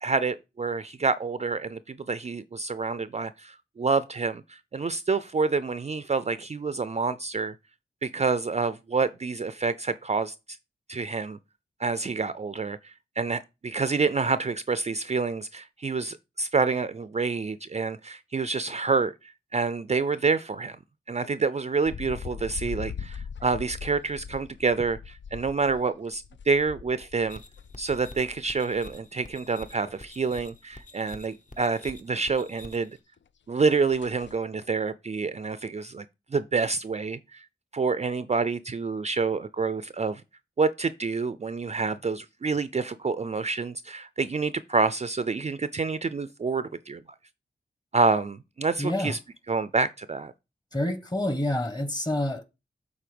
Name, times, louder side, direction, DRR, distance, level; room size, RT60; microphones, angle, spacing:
voice 1, 0.0-7.5 8.0-10.3 10.9-11.4 11.8-20.8 21.1-27.4 27.8-33.0 33.5-36.0 36.3-37.4 37.7-40.2 40.6-47.0 47.9-49.2 49.5-50.3, right 4 dB, 35° right, 0.4 m, -28 dB
sound 1, 21.8-29.0 29.4-30.2 30.5-30.6 31.0-31.1 33.2-33.3 33.6-33.7 33.9-34.4, left 7 dB, 75° left, 0.4 m, -41 dB
sound 2, 27.3-33.0, left 2 dB, 40° left, 1.1 m, -48 dB
voice 2, 48.8-49.2 50.7-52.4, left 1 dB, 20° left, 1.3 m, -28 dB
7.6 x 4.1 x 5.1 m
wide cardioid pair, 80°, 19 cm